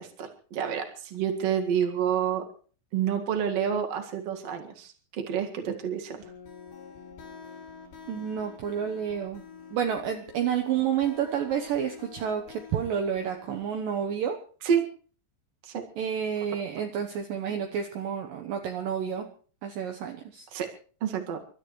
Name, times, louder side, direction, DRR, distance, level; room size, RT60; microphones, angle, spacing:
voice 1, 0.0-2.4 2.9-6.2 14.6-14.9 15.6-15.8 16.8-16.9 20.5-20.7 21.0-21.4, right 8 dB, 50° right, 4 dB, 2.0 m, -29 dB
sound 1, 6.2-13.8, left 6 dB, 90° left, 5.3 m, -47 dB
voice 2, 8.1-9.4 9.7-14.4 16.0-19.3 19.6-20.5, right 8 dB, 75° right, 4 dB, 2.0 m, -30 dB
30.0 x 13.0 x 3.1 m, 0.42 s
omnidirectional pair, 5.4 m